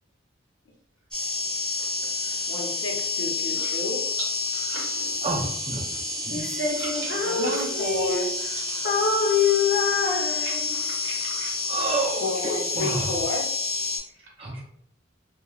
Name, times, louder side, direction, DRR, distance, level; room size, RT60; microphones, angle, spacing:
sound 1, 1.1-14.0, left 3 dB, 5° left, 0.8 m, -29 dB
voice 1, 2.5-4.0 7.2-8.3 12.2-13.5, left 2 dB, 85° left, -1 dB, 0.7 m, -31 dB
voice 2, 4.2-5.5 5.9-6.0 6.8-7.7 8.6-8.8 10.4-11.5, right 1 dB, 70° right, -3 dB, 0.7 m, -39 dB
voice 3, 5.2-5.8 6.2-6.4 11.7-13.1 14.4-14.6, right 2 dB, 30° right, -3 dB, 0.5 m, -29 dB
Female singing, 6.3-8.5 8.8-10.9, left 5 dB, 50° left, 0.5 m, -25 dB
3.0 x 2.2 x 2.3 m, 0.71 s
head